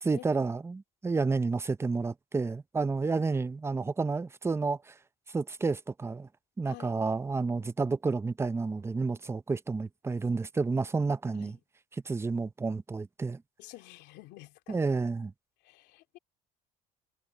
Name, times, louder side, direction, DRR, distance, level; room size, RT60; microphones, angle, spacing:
voice 1, 0.0-4.9 5.3-6.3 6.6-11.6 12.1-13.4 14.7-15.3, right 4 dB, 15° right, 0.6 m, -30 dB
voice 2, 6.6-7.0 11.3-11.6 13.6-14.8 15.6-16.2, left 17 dB, 90° left, 2.6 m, -50 dB
cardioid pair, 110°, 17 cm